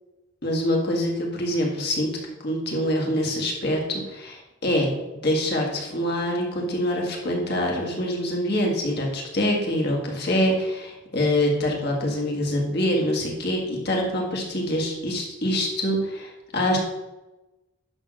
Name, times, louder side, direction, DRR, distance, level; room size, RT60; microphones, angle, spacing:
voice 1, 0.4-2.1 2.4-4.9 5.2-16.8, left 1 dB, 50° left, -1 dB, 2.0 m, -25 dB
11.0 x 3.7 x 6.3 m, 1.1 s
head